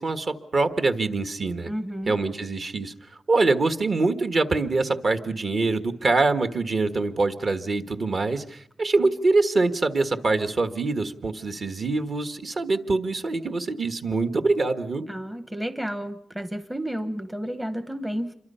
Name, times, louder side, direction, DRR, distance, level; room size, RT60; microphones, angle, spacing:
voice 1, 0.0-1.7 2.1-2.9 3.3-15.1, right 3 dB, 45° right, 9 dB, 1.5 m, -24 dB
voice 2, 1.7-2.1 15.1-18.3, equal, 10° right, 10 dB, 0.9 m, -31 dB
27.5 x 23.5 x 5.6 m, 0.66 s
wide cardioid pair, 135°, 0 cm